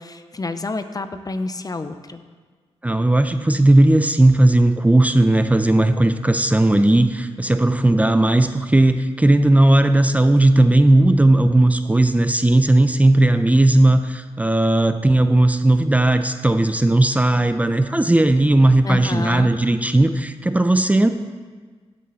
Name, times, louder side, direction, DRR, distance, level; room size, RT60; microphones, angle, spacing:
voice 1, 0.0-2.2 18.8-19.5, left 3 dB, 35° left, 9 dB, 0.7 m, -29 dB
voice 2, 2.8-21.1, right 1 dB, 15° right, 9 dB, 0.6 m, -16 dB
15.5 x 6.4 x 4.1 m, 1.5 s
cardioid pair, 65°, 11 cm